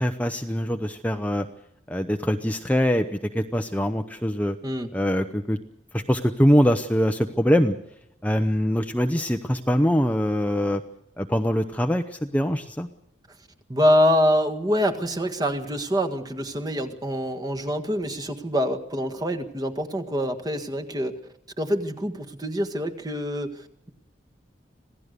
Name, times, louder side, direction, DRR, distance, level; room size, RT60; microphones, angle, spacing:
voice 1, 0.0-1.5 1.9-4.6 4.9-5.6 5.9-7.7 8.2-10.8 11.2-12.9, equal, 10° left, 6 dB, 0.8 m, -23 dB
voice 2, 13.7-21.1 21.6-23.9, equal, 20° right, 5 dB, 1.7 m, -25 dB
26.5 x 17.5 x 6.8 m, 0.78 s
head